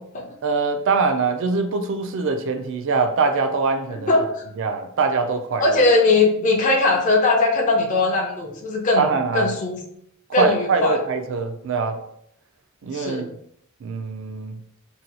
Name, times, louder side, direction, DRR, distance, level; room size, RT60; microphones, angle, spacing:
voice 1, 0.4-4.1 4.6-5.8 9.0-9.5 10.4-12.0 12.8-13.3 13.8-14.6, right 4 dB, 60° right, 7 dB, 0.4 m, -23 dB
voice 2, 3.9-4.4 5.6-9.8 10.3-11.0 12.9-13.3, left 3 dB, 35° left, 0 dB, 0.5 m, -20 dB
2.7 x 2.2 x 4.1 m, 0.71 s
head